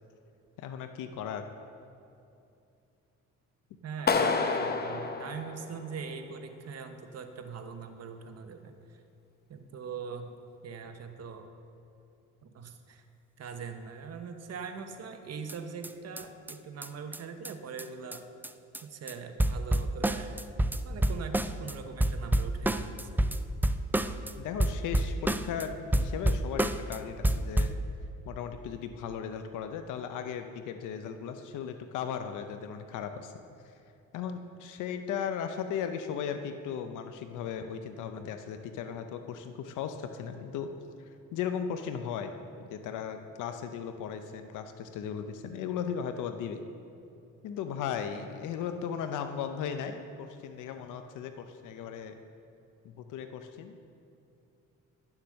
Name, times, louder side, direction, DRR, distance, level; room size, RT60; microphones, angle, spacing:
voice 1, 0.6-1.4 24.4-27.8 28.3-33.3 33.6-33.7 34.1-40.7 41.0-46.7 47.4-52.1 52.8-53.8, left 7 dB, 85° left, 8 dB, 0.7 m, -37 dB
voice 2, 3.8-9.0 9.5-10.4 10.6-11.5 12.4-13.0 13.4-18.2 18.8-20.3 20.8-23.2, right 5 dB, 55° right, 7 dB, 1.1 m, -42 dB
Clapping, 4.1-6.1, left 4 dB, 30° left, 0.9 m, -29 dB
sound 1, 15.5-15.6 15.8-15.9 16.2-16.3 16.5-16.6 16.8-16.9 17.1-17.2 17.5-17.6 17.8-17.9 18.1-18.2 18.4-18.8 19.1-19.2 19.4-21.7 22.0-24.3 24.6-25.6 25.9-27.0 27.2-27.8, right 1 dB, 5° right, 0.3 m, -28 dB
11.5 x 7.3 x 6.4 m, 2.7 s
cardioid pair, 90°, 30 cm